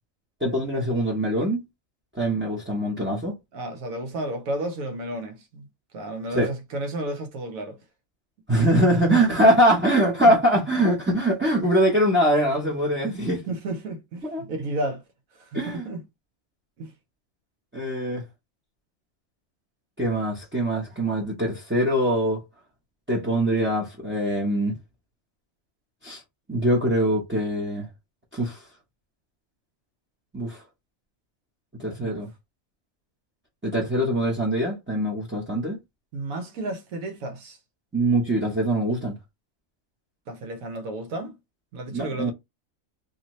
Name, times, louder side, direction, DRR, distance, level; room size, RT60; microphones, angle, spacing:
voice 1, 0.4-1.6 2.1-3.4 6.3-6.5 8.5-13.4 14.2-14.4 15.5-15.8 17.7-18.2 20.0-22.4 23.1-24.8 26.0-26.2 26.5-27.9 28.3-28.6 30.3-30.6 31.8-32.3 33.6-35.8 37.9-39.2 41.9-42.3, right 1 dB, 10° right, 0.6 m, -23 dB
voice 2, 3.5-5.7 5.9-7.8 8.9-9.4 10.2-10.3 13.3-15.0 15.3-16.0 16.8-16.9 32.0-32.2 36.1-37.6 40.3-41.3 41.7-42.3, right 1 dB, 85° right, 1.2 m, -32 dB
2.8 x 2.8 x 3.0 m
omnidirectional pair, 1.4 m